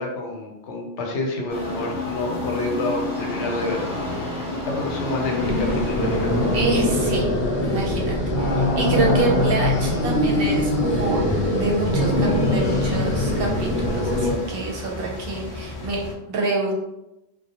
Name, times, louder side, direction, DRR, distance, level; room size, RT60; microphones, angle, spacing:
voice 1, 0.0-4.4 4.6-6.3, left 2 dB, 80° left, 0 dB, 0.9 m, -28 dB
sound 1, 1.5-16.1, left 1 dB, 40° left, 0.3 m, -39 dB
sound 2, 1.5-6.7, left 2 dB, 5° right, 0.6 m, -29 dB
sound 3, 5.4-14.4, left 1 dB, 55° left, 0.8 m, -22 dB
voice 2, 6.5-7.3 7.6-11.2 11.5-16.0 16.3-16.7, right 3 dB, 65° right, -1 dB, 0.7 m, -27 dB
2.4 x 2.0 x 2.8 m, 0.92 s
omnidirectional pair, 1.2 m